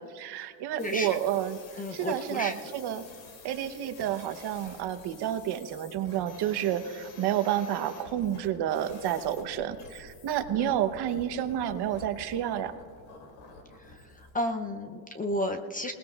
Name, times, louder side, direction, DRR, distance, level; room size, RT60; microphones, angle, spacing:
voice 1, 0.0-3.0 3.4-12.7, right 10 dB, 55° right, 9 dB, 0.9 m, -30 dB
sound 1, 0.8-14.4, left 4 dB, 75° left, 2.7 m, -50 dB
voice 2, 0.8-1.1 1.8-2.6 10.6-10.7 13.8-15.9, left 1 dB, 20° left, 5 dB, 0.5 m, -33 dB
26.5 x 19.5 x 2.4 m, 2.2 s
cardioid pair, 140°, 47 cm